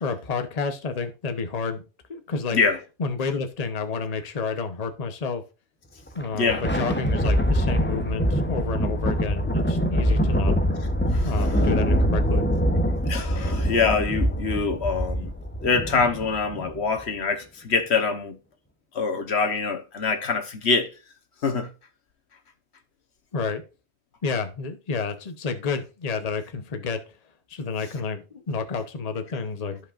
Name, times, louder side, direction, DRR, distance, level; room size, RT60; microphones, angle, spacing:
voice 1, 0.0-1.8 2.1-2.6 3.0-5.4 6.1-10.5 11.2-12.5 23.3-23.6 24.2-27.0 27.5-29.8, left 4 dB, 40° left, 1.0 m, -30 dB
Thunder, 6.1-16.8, equal, 10° left, 0.7 m, -24 dB
voice 2, 13.1-15.3 15.6-18.4 18.9-20.9 21.4-21.7, left 4 dB, 70° left, 1.4 m, -24 dB
14.5 x 5.2 x 2.5 m
omnidirectional pair, 1.1 m